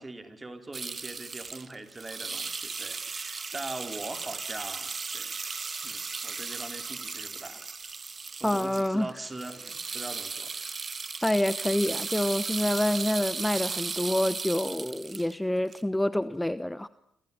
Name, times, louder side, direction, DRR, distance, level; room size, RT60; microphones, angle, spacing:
voice 1, 0.0-5.5 5.8-7.6 8.4-10.7, right 2 dB, 20° right, 7 dB, 4.6 m, -42 dB
sound 1, 0.7-15.3 15.7-15.8, right 4 dB, 35° right, 1.9 m, -36 dB
voice 2, 8.4-9.1 11.2-16.9, left 1 dB, 10° left, 15 dB, 1.1 m, -27 dB
28.5 x 26.0 x 7.4 m, 0.76 s
hypercardioid pair, 55°, 0 cm